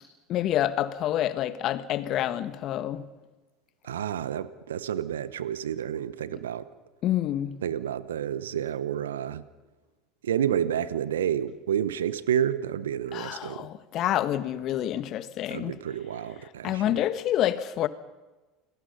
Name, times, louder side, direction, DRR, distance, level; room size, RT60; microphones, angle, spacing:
voice 1, 0.3-3.0 7.0-7.6 13.1-15.8 16.6-17.9, left 12 dB, 50° left, 1.6 m, -28 dB
voice 2, 3.8-6.7 7.6-9.4 10.2-13.7 15.5-17.0, right 9 dB, 80° right, 1.0 m, -30 dB
29.5 x 21.5 x 5.7 m
hypercardioid pair, 75°, 0 cm